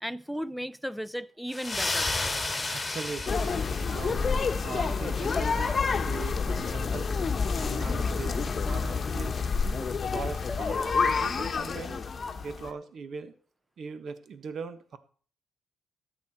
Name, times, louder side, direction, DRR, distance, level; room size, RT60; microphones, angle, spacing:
voice 1, 0.0-2.1, equal, ahead, 0.6 m, -35 dB
sound 1, 1.5-4.5, left 2 dB, 20° left, 2.1 m, -32 dB
voice 2, 2.7-3.5 3.9-7.2 7.6-9.4 9.8-12.0 12.4-13.3 13.8-15.0, right 5 dB, 55° right, 1.4 m, -40 dB
sound 2, 3.3-12.7, left 5 dB, 40° left, 1.1 m, -28 dB
13.5 x 8.6 x 4.4 m
cardioid pair, 90°, 0 cm